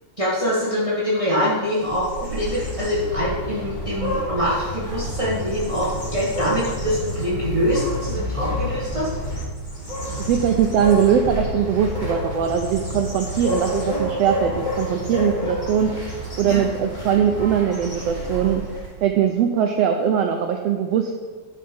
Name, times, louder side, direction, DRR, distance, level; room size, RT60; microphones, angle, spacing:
voice 1, 0.2-9.1 16.4-16.6, equal, 20° right, -7 dB, 1.0 m, -24 dB
sound 1, 1.7-19.0, left 1 dB, 15° left, 2.8 m, -29 dB
voice 2, 10.2-18.6 19.0-21.1, right 8 dB, 85° right, 4 dB, 1.4 m, -21 dB
11.0 x 6.6 x 5.2 m, 1.5 s
omnidirectional pair, 3.6 m